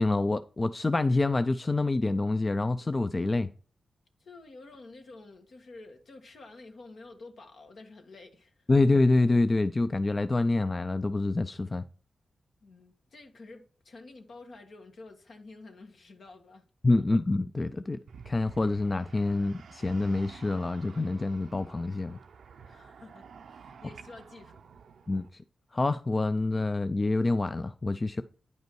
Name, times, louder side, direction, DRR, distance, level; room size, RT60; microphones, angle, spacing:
voice 1, 0.0-3.5 8.7-11.9 16.8-18.0 18.3-22.2 25.1-25.4 25.7-28.2, left 2 dB, 35° left, 0.4 m, -26 dB
voice 2, 4.2-8.7 12.6-16.6 16.9-17.0 22.6-24.6, left 3 dB, 75° left, 1.6 m, -50 dB
sound 1, 18.1-25.3, right 6 dB, 85° right, 0.5 m, -51 dB
9.3 x 5.4 x 4.6 m
cardioid pair, 60°, 0 cm